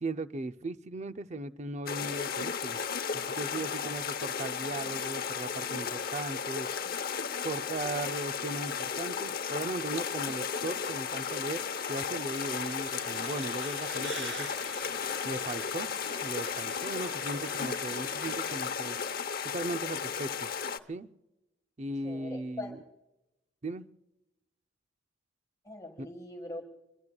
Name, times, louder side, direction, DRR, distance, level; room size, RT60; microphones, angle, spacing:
voice 1, 0.0-2.8 3.1-6.7 7.4-14.5 15.2-15.9 16.2-19.0 19.4-20.5 20.9-21.1 21.8-22.8 23.6-23.9 26.0-26.1, right 2 dB, 35° right, 10 dB, 0.6 m, -37 dB
sound 1, 1.9-20.8, left 6 dB, 50° left, 0.9 m, -34 dB
Gentle Stream Natural Stream Sound, 12.3-18.6, right 4 dB, 75° right, 3.4 m, -46 dB
voice 2, 22.0-22.7 25.7-26.6, left 1 dB, 20° left, 2 dB, 1.7 m, -41 dB
26.5 x 23.0 x 2.3 m, 0.94 s
head